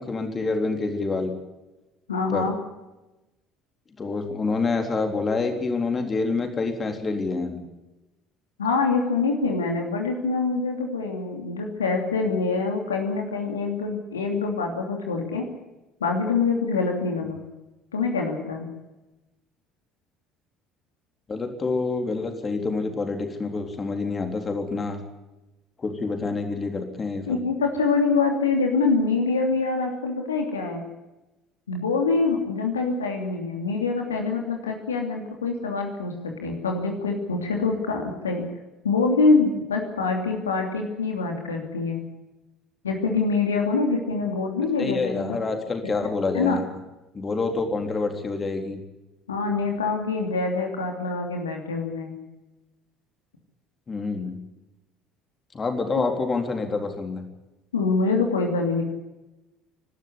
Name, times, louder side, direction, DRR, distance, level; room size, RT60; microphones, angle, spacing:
voice 1, 0.0-1.3 2.3-2.5 4.0-7.6 21.3-25.0 25.8-27.4 44.8-46.6 47.1-48.8 53.9-54.3 55.5-57.2, left 3 dB, 30° left, 5 dB, 3.8 m, -27 dB
voice 2, 2.1-2.6 8.6-15.4 16.0-17.4 17.9-18.7 27.3-30.8 31.7-38.4 38.8-42.0 42.8-45.4 45.8-45.9 46.3-46.6 49.3-52.1 55.9-56.0 57.7-58.8, left 4 dB, 80° left, 2 dB, 2.9 m, -25 dB
25.5 x 12.5 x 9.9 m, 1.0 s
figure-of-eight pair, 60°, 0 cm